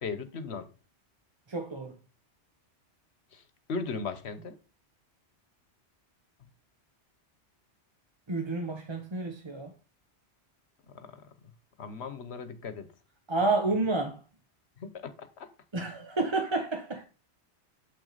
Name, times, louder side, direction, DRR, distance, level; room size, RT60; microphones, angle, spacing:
voice 1, 0.0-0.7 3.3-3.4 3.7-4.6 10.9-11.3 11.8-12.9 14.8-15.5, left 4 dB, 65° left, 1.3 m, -37 dB
voice 2, 1.5-2.0 8.3-9.7 13.3-14.2 15.7-17.0, right 3 dB, 25° right, 0.8 m, -30 dB
8.0 x 6.1 x 4.1 m
omnidirectional pair, 1.2 m